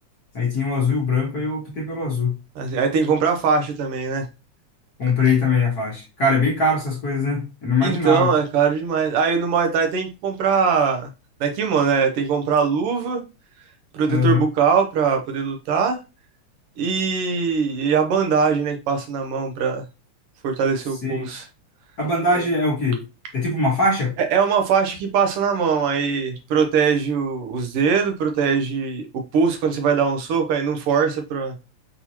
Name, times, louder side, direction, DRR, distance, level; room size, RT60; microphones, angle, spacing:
voice 1, 0.3-2.3 5.0-8.3 14.1-14.4 21.0-21.4 22.0-23.0 23.3-24.1, left 3 dB, 55° left, -3 dB, 1.1 m, -21 dB
voice 2, 2.6-4.3 7.8-11.1 11.4-13.2 13.9-16.0 16.8-19.8 20.4-21.5 24.2-31.5, right 6 dB, 85° right, 4 dB, 1.3 m, -21 dB
5.9 x 2.9 x 2.8 m, 0.28 s
omnidirectional pair, 3.5 m